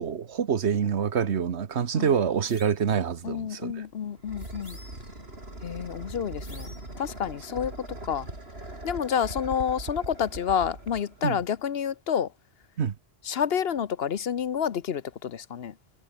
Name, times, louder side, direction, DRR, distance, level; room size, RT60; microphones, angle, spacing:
voice 1, 0.0-3.8 11.2-11.4 12.8-12.9, right 7 dB, 85° right, 1.4 m, -26 dB
sound 1, 2.4-2.9 4.4-5.2 6.4-7.0, left 1 dB, 35° left, 5.6 m, -51 dB
voice 2, 3.2-4.8 5.6-7.7 8.1-8.3 8.8-12.3 13.2-15.7, left 8 dB, 65° left, 1.1 m, -29 dB
sound 2, 3.7-11.6, right 1 dB, 65° right, 6.0 m, -41 dB
omnidirectional pair, 1.1 m